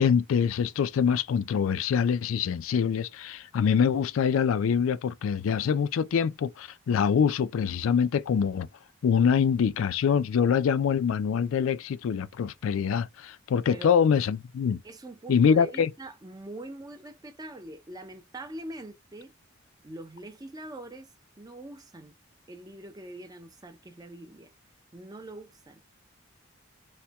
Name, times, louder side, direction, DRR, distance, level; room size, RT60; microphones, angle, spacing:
voice 1, 0.0-8.7 9.0-14.8 15.3-15.9, left 7 dB, 80° left, 0.3 m, -24 dB
voice 2, 14.8-19.3 19.8-22.1 22.5-24.5 24.9-25.8, right 1 dB, 20° right, 0.5 m, -43 dB
4.2 x 2.1 x 2.2 m
head